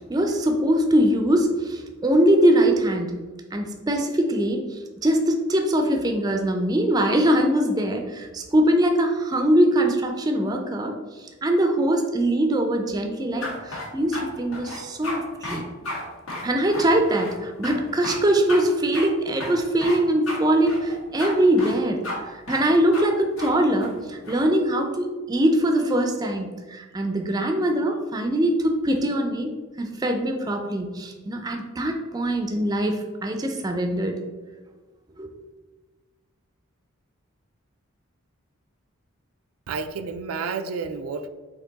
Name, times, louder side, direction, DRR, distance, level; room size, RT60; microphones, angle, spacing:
voice 1, 0.1-3.2 3.5-10.9 11.4-15.6 16.4-29.5 29.8-34.2 35.2-35.3, right 1 dB, 20° right, 4 dB, 0.4 m, -22 dB
sound 1, 13.4-14.2 14.5-15.2 15.4-15.6 15.8-16.0 16.3-17.4 17.6-17.7 18.0-18.2 18.5-18.6 18.9-19.1 19.4-20.0 20.3-20.4 20.7-21.3 21.6-21.8 22.0-22.1 22.5-22.6 22.9-23.0 23.4-23.5 23.8-24.5, left 2 dB, 80° left, 1.4 m, -33 dB
voice 2, 39.7-41.3, right 5 dB, 90° right, 9 dB, 0.4 m, -30 dB
4.4 x 2.9 x 3.9 m, 1.3 s
head